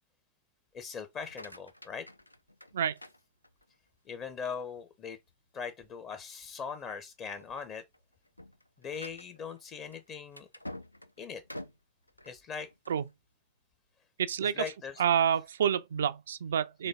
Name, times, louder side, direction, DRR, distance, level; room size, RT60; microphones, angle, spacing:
voice 1, 0.7-2.1 4.1-5.2 5.5-7.8 8.8-10.5 11.2-11.4 12.2-12.7 14.4-14.9 16.8-16.9, left 6 dB, 30° left, 0.8 m, -40 dB
sound 1, 1.1-3.9 4.4-4.8 5.3-5.4 5.8-6.0 6.6-6.9 7.3-13.1, left 1 dB, 85° left, 0.3 m, -49 dB
voice 2, 14.2-14.6 15.0-16.9, right 8 dB, 65° right, 0.3 m, -28 dB
4.1 x 3.2 x 3.5 m
figure-of-eight pair, 90°, 0 cm